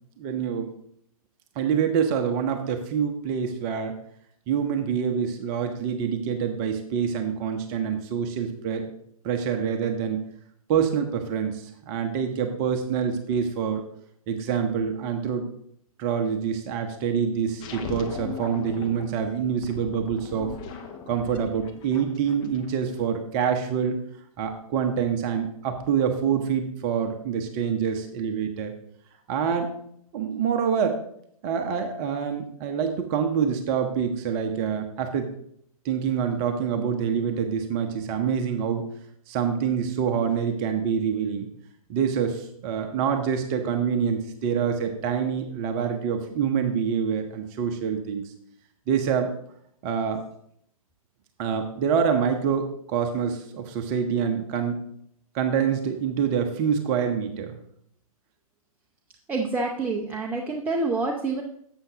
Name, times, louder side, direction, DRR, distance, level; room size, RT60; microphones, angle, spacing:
voice 1, 0.2-0.7 1.6-4.0 4.5-8.9 9.2-10.2 10.7-13.8 14.3-15.5 16.0-20.5 21.1-24.0 24.4-28.7 29.3-29.7 30.1-31.0 31.4-35.3 35.8-38.9 39.3-41.5 41.9-48.3 48.9-49.3 49.8-50.2 51.4-54.8 55.3-57.5, right 7 dB, 30° right, 6 dB, 0.9 m, -26 dB
sound 1, 17.6-23.0, left 5 dB, 25° left, 0.9 m, -39 dB
voice 2, 59.3-61.4, right 3 dB, 10° right, 1 dB, 0.6 m, -27 dB
11.0 x 7.9 x 2.9 m, 0.68 s
figure-of-eight pair, 125°, 19 cm